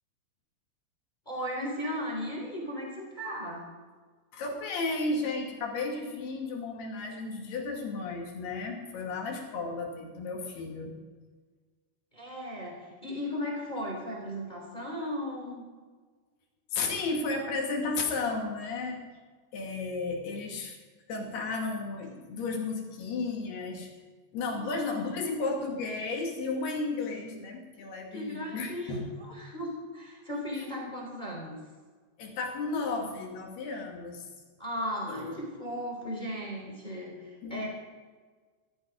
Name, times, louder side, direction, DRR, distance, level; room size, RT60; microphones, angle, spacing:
voice 1, 1.2-3.6 12.1-15.6 24.5-25.0 28.1-31.6 34.6-37.7, equal, 10° left, -1 dB, 3.1 m, -36 dB
voice 2, 4.4-10.9 16.8-19.0 19.5-20.7 21.1-23.9 24.3-29.1 32.2-34.2 35.1-35.4 37.4-37.6, left 3 dB, 55° left, 1 dB, 3.9 m, -33 dB
16.5 x 14.0 x 5.2 m, 1.4 s
omnidirectional pair, 5.9 m